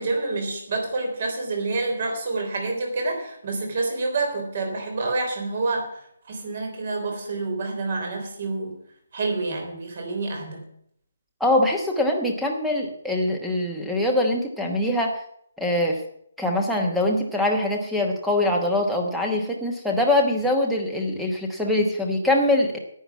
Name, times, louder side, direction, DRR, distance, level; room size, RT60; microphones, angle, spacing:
voice 1, 0.0-5.9 6.3-8.8 9.1-10.6, right 3 dB, 35° right, 3 dB, 3.5 m, -28 dB
voice 2, 11.4-15.1 15.6-16.0 16.4-22.8, left 1 dB, ahead, 0 dB, 1.1 m, -23 dB
10.5 x 8.9 x 7.1 m, 0.69 s
hypercardioid pair, 180°, 0 cm